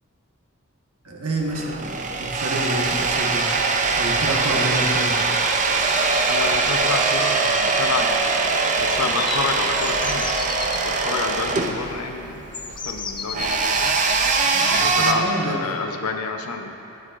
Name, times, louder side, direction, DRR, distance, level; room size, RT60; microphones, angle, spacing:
voice 1, 1.0-3.5 4.0-5.2 14.5-15.6, right 1 dB, 90° right, -1 dB, 1.3 m, -28 dB
sound 1, 1.4-15.1, right 4 dB, 35° right, 0.5 m, -22 dB
voice 2, 6.3-10.5 10.8-12.5 12.8-14.0 14.8-16.7, left 4 dB, 85° left, 5 dB, 0.7 m, -29 dB
sound 2, 9.2-10.8 11.9-12.0 12.5-14.0, left 4 dB, 20° left, 0.6 m, -33 dB
18.0 x 6.4 x 2.5 m, 2.8 s
head